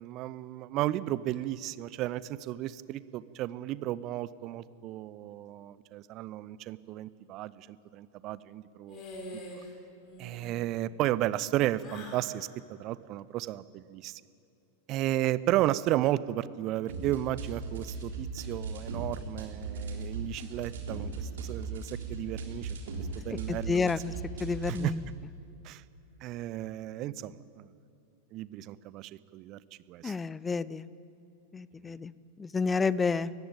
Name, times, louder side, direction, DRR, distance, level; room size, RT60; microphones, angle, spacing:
voice 1, 0.0-9.2 10.2-14.2 14.9-22.7 23.0-23.9 24.7-24.9 25.6-25.8 26.2-27.7 28.3-29.6 29.9-30.1 31.8-32.0, right 14 dB, 40° right, 18 dB, 0.6 m, -33 dB
sound 1, 8.9-9.7 10.0-10.6 11.8-12.3, left 1 dB, 35° left, 4.2 m, -44 dB
sound 2, 16.9-24.9, right 3 dB, 60° right, 3.7 m, -38 dB
voice 2, 23.5-24.1 24.4-25.0 30.0-30.9 31.5-32.1 32.4-33.3, left 4 dB, 15° left, 19 dB, 0.5 m, -30 dB
19.0 x 15.0 x 9.2 m, 2.7 s
figure-of-eight pair, 90°, 0 cm